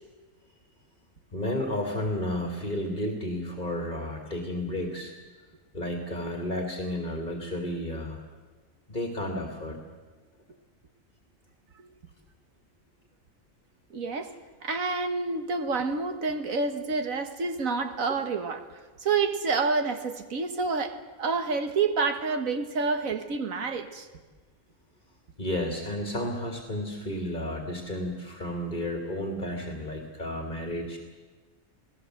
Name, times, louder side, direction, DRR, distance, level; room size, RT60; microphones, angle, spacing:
voice 1, 1.3-5.1 5.7-8.2 8.9-9.8 25.4-31.0, left 1 dB, 35° left, 2 dB, 2.7 m, -32 dB
voice 2, 13.9-14.3 14.6-18.6 19.0-24.1, right 4 dB, 80° right, 8 dB, 2.0 m, -28 dB
29.5 x 18.5 x 7.9 m, 1.4 s
omnidirectional pair, 1.4 m